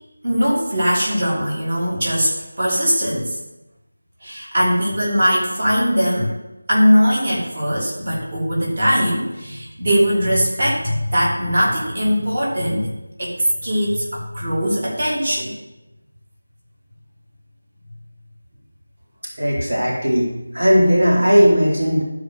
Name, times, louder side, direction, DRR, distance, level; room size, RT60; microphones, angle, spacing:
voice 1, 0.2-3.4 4.2-6.3 6.7-12.9 13.2-13.4 13.6-15.5, equal, 45° right, -5 dB, 3.0 m, -20 dB
voice 2, 19.4-22.0, equal, 65° right, -4 dB, 2.7 m, -16 dB
12.0 x 5.0 x 6.3 m, 0.97 s
figure-of-eight pair, 170°, 0 cm